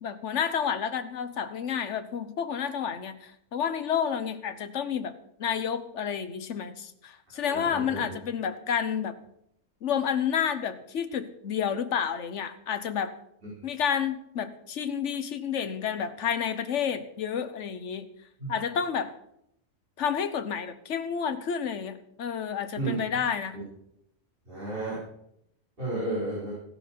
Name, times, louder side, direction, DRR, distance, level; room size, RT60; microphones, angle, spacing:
voice 1, 0.0-5.1 5.4-9.1 9.8-13.1 13.6-18.1 18.5-19.1 20.0-23.6, left 7 dB, 60° left, 11 dB, 1.3 m, -30 dB
voice 2, 7.4-8.1 18.4-18.5 22.8-23.0 24.5-25.0 25.8-26.5, right 2 dB, 40° right, -8 dB, 5.1 m, -32 dB
15.5 x 11.5 x 4.7 m, 0.76 s
omnidirectional pair, 1.4 m